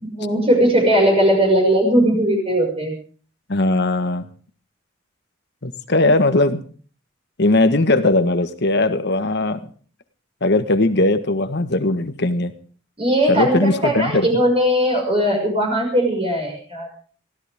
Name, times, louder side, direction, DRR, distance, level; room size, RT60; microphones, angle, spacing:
voice 1, 0.2-2.9 13.0-16.9, equal, 30° right, 1 dB, 5.9 m, -18 dB
voice 2, 3.5-4.2 5.6-6.6 7.4-9.6 10.4-12.5 13.3-14.3, left 2 dB, 55° left, 10 dB, 1.5 m, -19 dB
23.5 x 16.0 x 3.6 m, 0.42 s
head